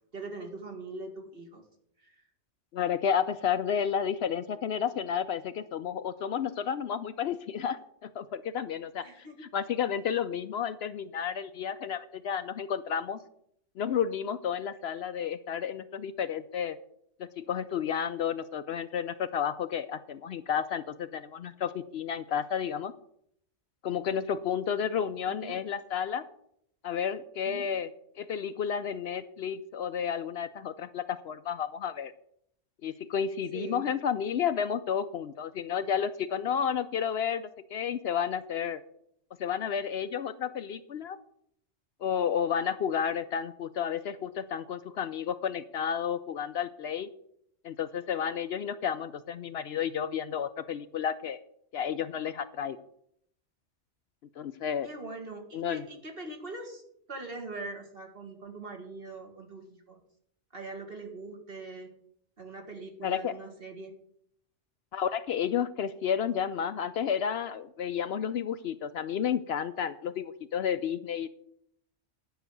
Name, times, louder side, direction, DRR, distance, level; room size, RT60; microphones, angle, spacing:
voice 1, 0.1-1.6 2.0-2.1 9.0-9.5 25.3-25.6 27.4-27.7 33.5-33.9 54.8-56.8 57.1-60.0 60.5-61.9 62.4-63.9, right 3 dB, 50° right, 2 dB, 2.2 m, -42 dB
voice 2, 2.7-9.3 9.5-13.2 13.8-16.8 17.2-22.9 23.8-26.2 26.8-27.9 28.2-32.1 32.8-38.8 39.4-41.2 42.0-47.1 47.6-51.4 51.7-52.8 54.4-54.9 55.5-55.8 63.0-63.3 64.9-71.3, left 8 dB, 65° left, 12 dB, 0.8 m, -31 dB
10.5 x 5.9 x 8.0 m, 0.69 s
omnidirectional pair, 1.2 m